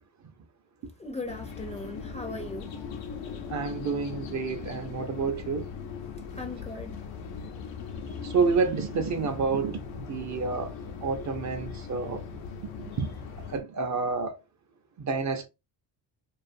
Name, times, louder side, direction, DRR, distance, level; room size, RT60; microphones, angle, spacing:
voice 1, 1.0-2.7 6.4-7.0, left 2 dB, 15° left, 0.5 m, -38 dB
sound 1, 1.3-13.6, left 6 dB, 90° left, 0.7 m, -39 dB
voice 2, 3.5-5.7 8.2-10.7 11.0-12.2 12.8-13.1 13.5-14.4 15.1-15.5, right 4 dB, 40° right, 0.6 m, -29 dB
2.4 x 2.4 x 2.5 m
cardioid pair, 95°, 44 cm